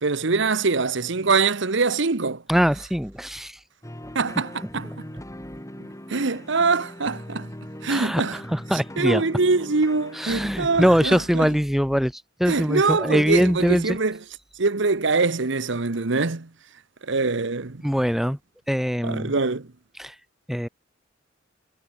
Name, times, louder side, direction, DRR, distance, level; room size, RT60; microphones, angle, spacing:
voice 1, 0.0-2.4 4.1-5.1 6.1-7.5 7.8-8.4 9.0-11.5 12.5-14.2 14.6-16.5 17.1-17.8 19.0-19.7, right 4 dB, 65° right, 1.1 m, -23 dB
voice 2, 2.5-3.5 4.8-5.0 7.9-9.2 10.1-14.0 17.8-18.4 18.7-19.3 20.0-20.1 20.5-20.7, equal, ahead, 1.3 m, -22 dB
sound 1, 3.8-11.0, equal, 15° left, 7.7 m, -40 dB
head